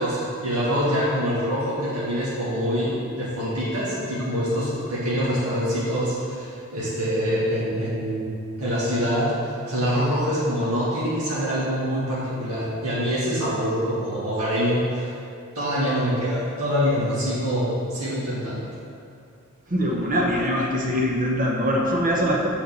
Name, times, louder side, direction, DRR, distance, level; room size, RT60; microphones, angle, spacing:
voice 1, 0.0-8.3 8.6-15.1 15.6-18.7, equal, 85° right, -9 dB, 2.0 m, -25 dB
voice 2, 19.7-22.5, equal, 40° right, -2 dB, 1.0 m, -23 dB
6.5 x 5.6 x 7.1 m, 2.4 s
head